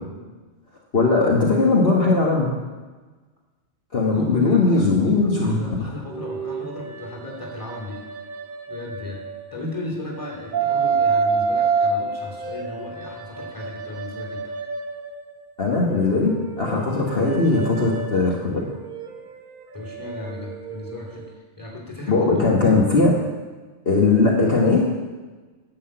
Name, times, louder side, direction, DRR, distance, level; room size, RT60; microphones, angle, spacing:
voice 1, 0.9-2.5 3.9-5.9 15.6-18.6 22.1-23.1 23.8-24.9, left 3 dB, 50° left, -3 dB, 1.6 m, -19 dB
voice 2, 4.0-4.9 5.2-8.0 8.7-9.3 9.5-14.5 17.8-17.9 19.7-22.8, left 2 dB, 15° left, -3 dB, 2.7 m, -36 dB
sound 1, 6.1-9.7 10.1-15.3 15.7-21.3, right 5 dB, 45° right, 0.9 m, -28 dB
11.0 x 6.1 x 7.7 m, 1.3 s
omnidirectional pair, 1.3 m